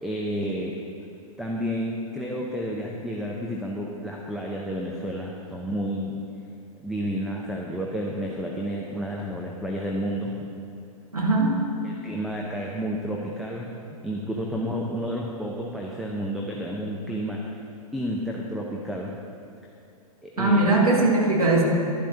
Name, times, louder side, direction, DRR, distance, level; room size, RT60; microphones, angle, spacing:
voice 1, 0.0-0.8 1.4-6.2 6.8-10.5 11.8-13.7 14.0-17.5 17.9-19.1 20.2-20.7, equal, ahead, -2 dB, 0.6 m, -31 dB
voice 2, 11.1-11.5 20.4-21.6, right 2 dB, 75° right, -3 dB, 2.2 m, -20 dB
11.5 x 11.5 x 2.9 m, 2.8 s
figure-of-eight pair, 105°, 19 cm